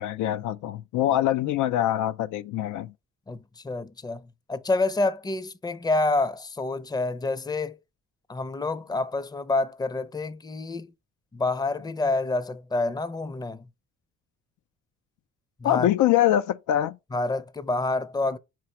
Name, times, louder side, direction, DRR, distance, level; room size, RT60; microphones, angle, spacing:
voice 1, 0.0-2.9 15.6-17.0, left 12 dB, 75° left, 0.5 m, -24 dB
voice 2, 3.3-7.8 8.3-10.9 11.3-13.7 15.6-15.9 17.1-18.4, left 2 dB, 15° left, 0.5 m, -28 dB
4.9 x 4.5 x 4.3 m
cardioid pair, 90°, 30 cm